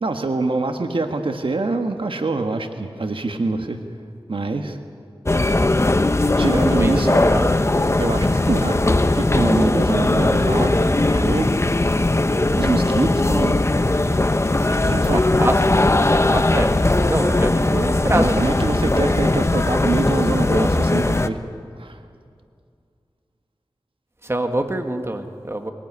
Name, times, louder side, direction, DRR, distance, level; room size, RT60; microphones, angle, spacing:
voice 1, 0.0-3.8 4.3-4.8 6.4-7.1 8.0-8.8 9.1-11.6 12.6-13.6 14.8-15.2 18.2-21.4 21.8-22.0, right 3 dB, 70° right, 6 dB, 1.4 m, -24 dB
sound 1, 5.3-21.3, left 2 dB, 30° left, 0.9 m, -19 dB
voice 2, 6.4-7.5 14.6-15.6 15.9-18.4 18.8-19.4 24.2-25.7, right 1 dB, 25° right, 6 dB, 1.7 m, -26 dB
23.0 x 18.5 x 9.6 m, 2.3 s
wide cardioid pair, 65°, 9 cm